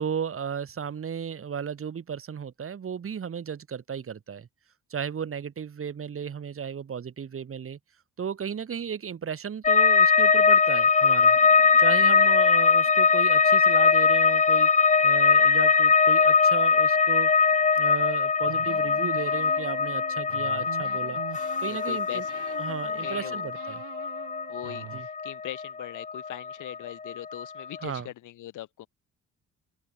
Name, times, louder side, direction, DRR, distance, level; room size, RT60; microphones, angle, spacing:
voice 1, 0.0-4.5 4.9-7.8 8.2-11.4 11.8-14.7 15.0-17.3 17.8-21.2 21.6-22.2 22.6-23.8 24.9-25.1 27.8-28.1, right 7 dB, 45° right, 3.4 m, -34 dB
sound 1, 9.6-26.8 27.0-27.8, left 5 dB, 25° left, 0.9 m, -21 dB
sound 2, 18.4-22.0 22.3-25.0, right 16 dB, 90° right, 5.7 m, -44 dB
voice 2, 21.6-22.3 23.0-23.4 24.5-28.9, left 14 dB, 85° left, 7.0 m, -40 dB
open air
cardioid pair, 90°, 30 cm